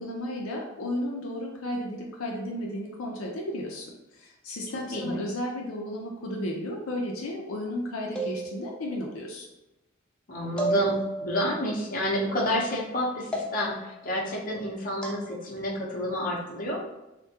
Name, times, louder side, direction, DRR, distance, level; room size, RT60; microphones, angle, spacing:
voice 1, 0.0-9.5, left 1 dB, 80° left, -1 dB, 0.5 m, -34 dB
voice 2, 4.9-5.2 10.3-16.8, equal, 40° left, -4 dB, 0.8 m, -29 dB
sound 1, 8.2-9.0 10.6-11.5 13.3-14.0 15.0-15.2, right 1 dB, 5° left, 0.4 m, -32 dB
3.4 x 2.2 x 2.8 m, 0.98 s
head